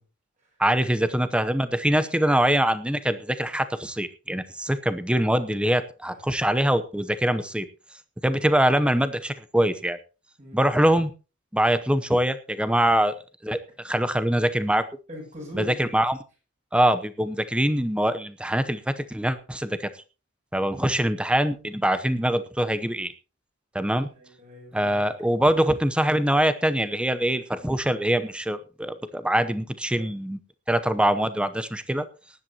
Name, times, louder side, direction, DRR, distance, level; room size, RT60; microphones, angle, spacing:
voice 1, 0.6-7.7 8.2-10.0 10.5-11.1 11.5-13.1 13.4-14.8 15.5-16.2 16.7-19.9 20.5-23.1 23.7-24.1 24.7-30.4 30.7-32.0, right 1 dB, 5° right, 12 dB, 0.8 m, -23 dB
voice 2, 5.8-6.8 10.4-10.7 12.8-12.9 15.1-15.9 20.7-21.0 24.1-25.1 29.9-30.0, equal, 35° right, -1 dB, 7.8 m, -42 dB
19.5 x 10.5 x 2.9 m, 0.32 s
head